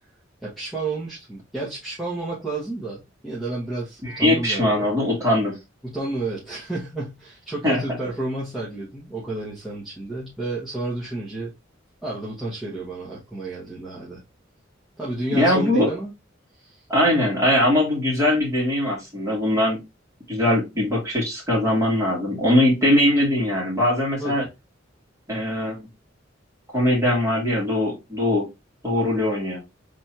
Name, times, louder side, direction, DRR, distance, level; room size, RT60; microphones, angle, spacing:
voice 1, 0.4-4.9 5.8-11.5 12.0-14.2 15.0-16.1 16.6-16.8 24.2-24.5, right 2 dB, ahead, 1.4 m, -31 dB
voice 2, 4.0-5.6 7.6-7.8 15.3-15.9 16.9-19.8 20.3-24.4 25.3-25.9 26.7-28.4 28.8-29.6, left 1 dB, 15° right, 2.5 m, -21 dB
4.1 x 3.6 x 2.9 m
head